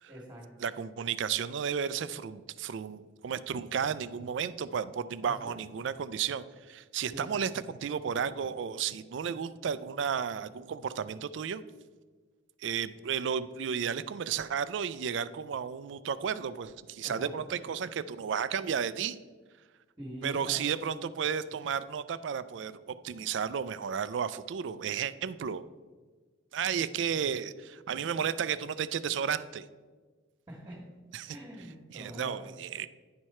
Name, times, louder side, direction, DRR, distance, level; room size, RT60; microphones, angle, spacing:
voice 1, 0.1-0.7 5.2-5.6 7.1-7.3 17.0-17.3 20.0-20.9 30.5-30.8 31.3-32.4, equal, 20° right, -5 dB, 1.4 m, -44 dB
voice 2, 0.6-11.6 12.6-19.2 20.2-25.6 26.5-29.7 31.1-31.4 31.9-32.9, right 7 dB, 70° right, 15 dB, 0.4 m, -33 dB
10.5 x 4.7 x 4.3 m, 1.4 s
head